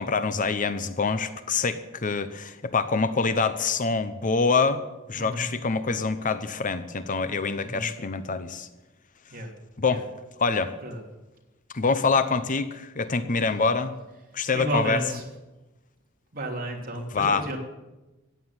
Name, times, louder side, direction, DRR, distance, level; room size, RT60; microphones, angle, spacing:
voice 1, 0.0-4.8 5.1-8.7 9.8-10.0 10.4-10.7 11.7-14.0 14.3-15.0 17.1-17.4, left 4 dB, 40° left, 12 dB, 0.8 m, -25 dB
voice 2, 5.1-5.5 7.6-7.9 9.3-9.5 9.9-10.0 10.8-11.1 14.5-15.2 16.3-17.6, right 1 dB, 45° right, 1 dB, 3.3 m, -32 dB
15.0 x 9.3 x 9.7 m, 1.1 s
head